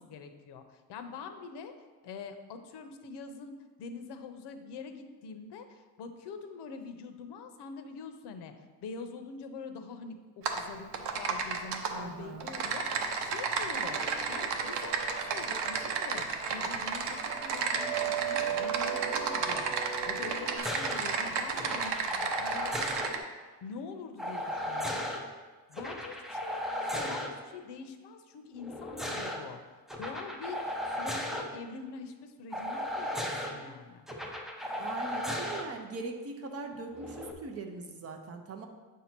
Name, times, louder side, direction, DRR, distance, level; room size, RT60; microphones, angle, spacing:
voice 1, 0.0-1.7 2.0-8.5 8.8-10.9 11.2-14.0 14.3-25.1 25.7-29.6 30.0-30.6 30.9-34.1, left 5 dB, 80° left, 7 dB, 0.7 m, -45 dB
Typing, 10.4-10.6 10.9-11.9 12.4-23.2, right 5 dB, 85° right, 0.8 m, -33 dB
voice 2, 11.9-12.5 34.8-38.7, right 3 dB, 35° right, 4 dB, 0.7 m, -41 dB
sound 1, 13.7-20.6, right 10 dB, 70° right, 1.1 m, -39 dB
sound 2, 20.6-21.0 21.5-23.1 24.2-25.2 25.7-27.3 28.6-29.4 29.9-31.4 32.5-33.5 34.1-35.6 36.9-37.3, equal, ahead, 0.4 m, -35 dB
8.1 x 2.8 x 5.9 m, 1.3 s
cardioid pair, 165°, 40 cm